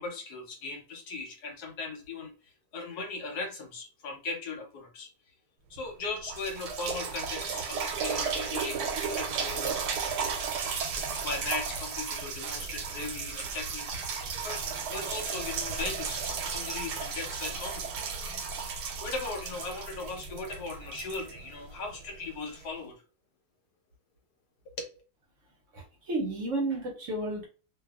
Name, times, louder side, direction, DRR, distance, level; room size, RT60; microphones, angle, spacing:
voice 1, 0.0-2.3 2.7-5.1 5.7-9.8 10.9-13.9 14.4-14.6 14.9-17.8 18.6-23.0 24.8-24.9, left 3 dB, 80° left, 3 dB, 1.3 m, -38 dB
sound 1, 5.8-5.9 6.3-22.0 22.6-22.7, right 5 dB, 85° right, 1.2 m, -34 dB
voice 2, 25.7-27.5, right 2 dB, 60° right, 0 dB, 0.9 m, -32 dB
2.6 x 2.4 x 2.3 m, 0.35 s
omnidirectional pair, 1.7 m